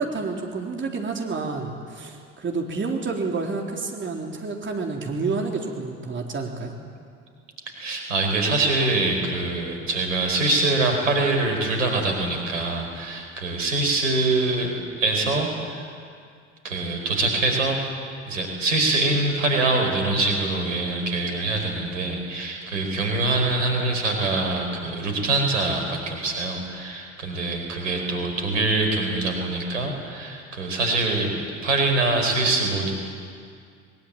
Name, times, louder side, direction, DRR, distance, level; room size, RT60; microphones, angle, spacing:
voice 1, 0.0-6.8, right 4 dB, 30° right, 1 dB, 3.6 m, -29 dB
voice 2, 7.6-14.7 15.0-15.9 16.6-17.8 18.3-32.9, right 2 dB, 85° right, 2 dB, 4.8 m, -24 dB
22.5 x 21.5 x 8.9 m, 2.2 s
hypercardioid pair, 65°, 37 cm